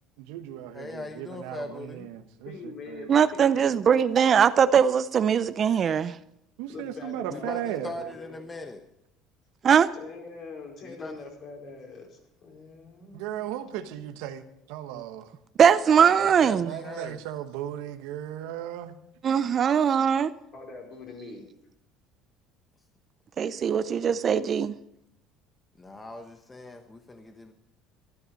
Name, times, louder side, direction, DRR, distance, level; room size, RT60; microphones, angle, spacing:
voice 1, 0.2-3.2 6.6-7.9 13.1-15.3 16.6-19.0, right 11 dB, 85° right, 1.1 m, -36 dB
voice 2, 0.7-2.1 7.3-8.8 10.8-11.1 15.9-17.2 25.8-27.5, left 2 dB, 20° left, 1.1 m, -40 dB
voice 3, 2.4-3.9 6.7-8.4 9.9-13.8 20.5-21.5, left 4 dB, 50° left, 4.8 m, -43 dB
voice 4, 3.1-6.1 9.6-9.9 15.6-16.7 19.2-20.3 23.4-24.7, right 7 dB, 40° right, 0.5 m, -21 dB
13.0 x 12.5 x 5.3 m
supercardioid pair, 110°, 0 cm